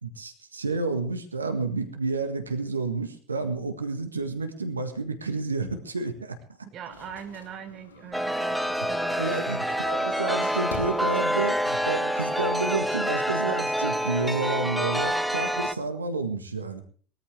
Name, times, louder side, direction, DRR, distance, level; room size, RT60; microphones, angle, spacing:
voice 1, 0.0-6.4 9.2-16.8, right 3 dB, 80° right, 7 dB, 1.7 m, -30 dB
voice 2, 6.7-9.5, right 8 dB, 40° right, 8 dB, 1.7 m, -41 dB
sound 1, 6.9-12.8, left 5 dB, 75° left, 2.7 m, -47 dB
Chime, 8.1-15.7, equal, ahead, 0.9 m, -27 dB
20.5 x 14.0 x 3.4 m, 0.42 s
figure-of-eight pair, 70°, 0 cm